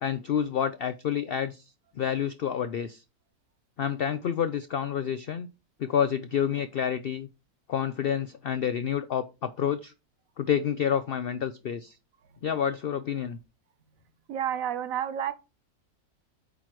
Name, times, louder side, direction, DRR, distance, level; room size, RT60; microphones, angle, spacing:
voice 1, 0.0-1.6 2.0-3.0 3.8-5.5 5.8-7.3 7.7-9.9 10.4-12.0 12.4-13.4, left 8 dB, 75° left, 0.5 m, -28 dB
voice 2, 14.3-15.3, right 9 dB, 70° right, 1.1 m, -30 dB
8.7 x 3.2 x 5.9 m
omnidirectional pair, 1.6 m